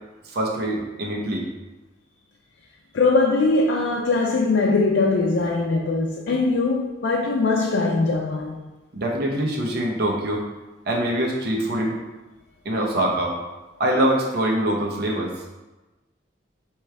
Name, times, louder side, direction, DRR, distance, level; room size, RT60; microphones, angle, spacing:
voice 1, 0.3-1.5 8.9-10.4 10.9-12.0 12.6-13.4 13.8-15.3, right 1 dB, 60° right, 0.8 m, -24 dB
voice 2, 2.9-8.6, left 3 dB, 70° left, 0.5 m, -21 dB
4.7 x 3.1 x 3.2 m
head